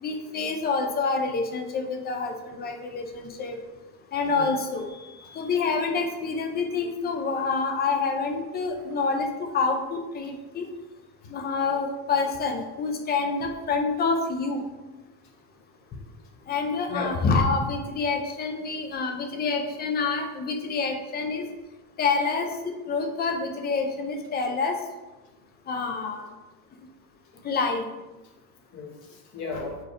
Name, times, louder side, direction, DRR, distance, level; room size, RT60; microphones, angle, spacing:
voice 1, 0.0-3.6 4.1-4.9 5.4-10.7 11.3-14.6 16.5-21.4 22.0-24.7 25.7-26.3 27.4-27.8, left 4 dB, 20° left, 5 dB, 0.5 m, -27 dB
voice 2, 4.9-5.5 16.9-17.2 28.7-29.8, left 3 dB, 45° left, 0 dB, 1.0 m, -36 dB
4.7 x 4.6 x 5.0 m, 1.1 s
cardioid pair, 170°, 43 cm